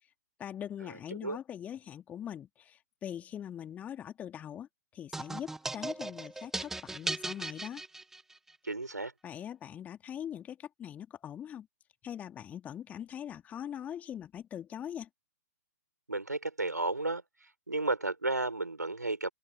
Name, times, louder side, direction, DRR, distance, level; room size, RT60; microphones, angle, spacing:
voice 1, 0.4-7.8 9.2-11.7 12.0-15.1, left 9 dB, 15° left, 3.2 m, -42 dB
sound 1, 5.1-8.5, right 2 dB, 5° right, 1.5 m, -38 dB
voice 2, 8.7-9.1 16.1-17.2 17.7-19.3, right 2 dB, 80° right, 5.1 m, -32 dB
figure-of-eight pair, 120°, 9 cm